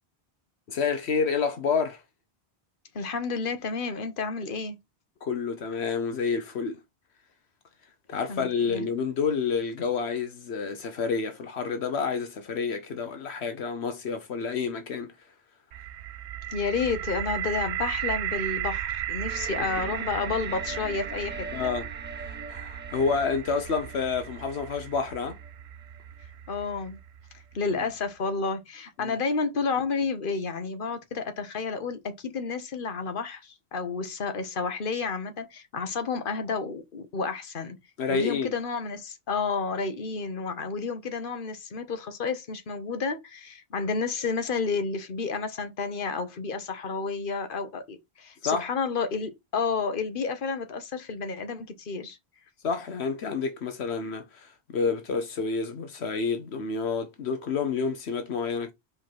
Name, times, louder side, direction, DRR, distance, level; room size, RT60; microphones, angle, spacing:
voice 1, 0.7-2.0 5.2-6.8 8.1-15.1 19.6-19.7 21.5-21.9 22.2-25.4 29.0-29.2 38.0-38.5 48.4-48.7 52.6-58.7, left 5 dB, 80° left, 1.2 m, -29 dB
voice 2, 2.9-4.7 8.3-8.9 16.5-21.5 26.5-27.0 27.5-37.8 38.1-52.2, left 4 dB, 55° left, 1.3 m, -31 dB
sound 1, 15.7-27.5, right 12 dB, 85° right, 0.9 m, -35 dB
sound 2, 19.3-26.2, right 2 dB, 15° right, 0.4 m, -43 dB
5.1 x 3.8 x 5.8 m
omnidirectional pair, 1.1 m